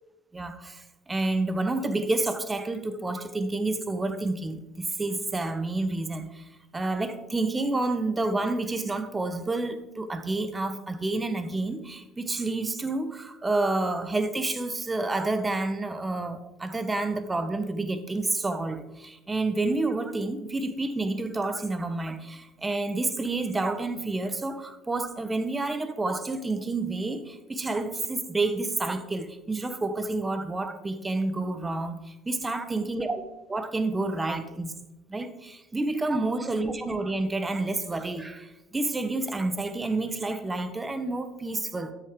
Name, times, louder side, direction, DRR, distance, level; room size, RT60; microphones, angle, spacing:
voice 1, 0.3-33.2 33.5-34.7 35.1-41.9, right 2 dB, 20° right, 10 dB, 1.0 m, -29 dB
9.2 x 7.7 x 3.7 m, 1.0 s
supercardioid pair, 80°, 0 cm